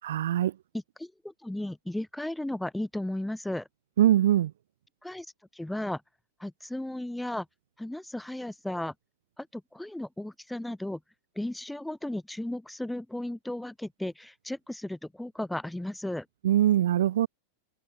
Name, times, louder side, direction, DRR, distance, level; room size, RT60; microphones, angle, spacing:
voice 1, 0.0-0.5 4.0-4.5 16.4-17.3, right 12 dB, 60° right, 1.2 m, -22 dB
voice 2, 0.7-3.7 5.0-5.3 5.5-6.0 6.4-7.5 7.8-8.9 9.4-11.0 11.4-16.3, left 1 dB, 5° left, 4.4 m, -35 dB
figure-of-eight pair, 90°, 0 cm